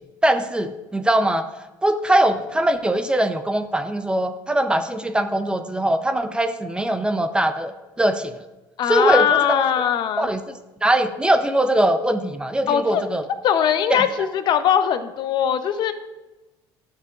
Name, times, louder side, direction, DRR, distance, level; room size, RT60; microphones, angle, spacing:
voice 1, 0.2-1.5 1.8-7.7 8.0-8.3 8.9-9.6 10.2-13.2 13.9-14.0, right 1 dB, 10° right, 9 dB, 0.5 m, -21 dB
voice 2, 8.8-10.3 12.7-13.0 13.4-15.9, left 9 dB, 55° left, 10 dB, 0.6 m, -20 dB
12.0 x 6.6 x 2.4 m, 1.1 s
cardioid pair, 110°, 9 cm